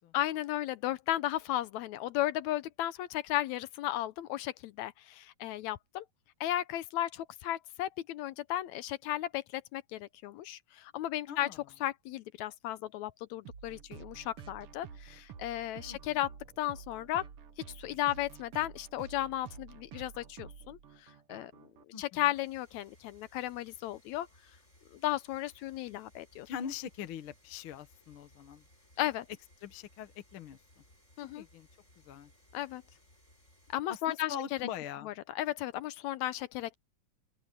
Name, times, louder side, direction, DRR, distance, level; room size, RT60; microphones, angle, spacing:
voice 1, 0.1-6.1 6.4-11.5 11.8-16.3 16.6-17.3 17.7-21.5 22.0-24.3 24.9-26.5 29.0-29.3 31.2-31.5 32.5-32.8 33.7-34.7 35.0-36.8, left 14 dB, 75° left, 1.8 m, -35 dB
voice 2, 11.3-11.6 15.9-16.0 21.9-22.2 26.4-28.6 29.6-30.6 31.3-31.7 32.1-32.3 33.9-35.1, left 8 dB, 55° left, 1.5 m, -42 dB
sound 1, 13.5-21.8, right 7 dB, 55° right, 1.9 m, -50 dB
sound 2, 22.3-33.8, left 1 dB, 20° left, 8.5 m, -64 dB
open air
omnidirectional pair, 3.7 m